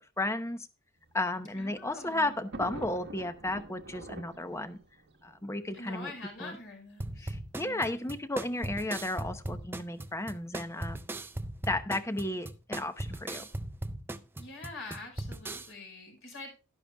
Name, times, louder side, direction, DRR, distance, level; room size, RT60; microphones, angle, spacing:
voice 1, 0.2-0.7 1.1-4.8 5.2-6.1 6.4-6.6 7.2-11.0 11.6-13.5, left 2 dB, 15° left, 9 dB, 0.8 m, -33 dB
Thunder, 1.1-6.4 7.2-7.3 7.6-7.7 8.7-9.0, right 2 dB, 55° right, 1.2 m, -47 dB
voice 2, 1.5-2.3 5.7-7.3 7.6-8.1 14.4-16.5, left 2 dB, 60° left, 1 dB, 5.1 m, -45 dB
sound 1, 7.0-15.7, right 1 dB, 10° right, 0.4 m, -38 dB
12.0 x 11.5 x 2.3 m, 0.32 s
head